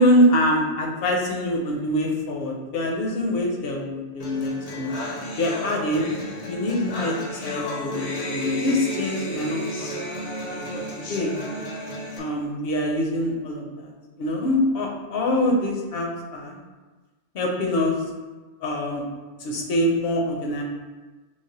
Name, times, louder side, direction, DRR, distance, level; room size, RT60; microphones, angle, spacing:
voice 1, 0.0-4.9 5.4-6.1 6.5-9.9 10.5-10.8 11.1-11.3 12.2-13.9 14.2-16.6 17.3-17.9 18.6-19.0 19.4-20.6, left 1 dB, 70° left, 0 dB, 0.8 m, -24 dB
sound 1, 4.2-12.2, equal, 45° left, 0.6 m, -32 dB
3.2 x 2.1 x 4.0 m, 1.3 s
omnidirectional pair, 1.1 m